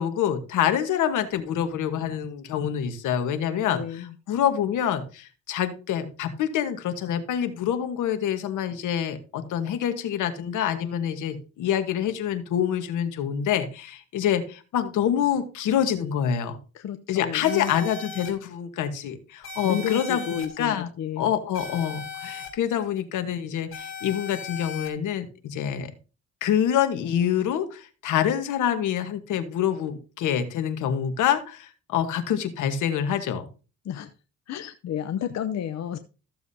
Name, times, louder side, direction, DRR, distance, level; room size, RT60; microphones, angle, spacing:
voice 1, 0.0-16.6 17.1-20.9 21.2-25.9 26.4-33.4, left 9 dB, 80° left, 10 dB, 1.3 m, -26 dB
voice 2, 3.7-4.1 16.7-17.7 19.6-21.3 33.8-34.1 34.5-36.0, left 9 dB, 60° left, 9 dB, 0.7 m, -31 dB
sound 1, 17.4-18.3 19.4-20.5 21.5-22.5 23.7-24.9, left 5 dB, 45° left, 2.8 m, -37 dB
14.5 x 7.0 x 2.7 m, 0.34 s
cardioid pair, 90°, 30 cm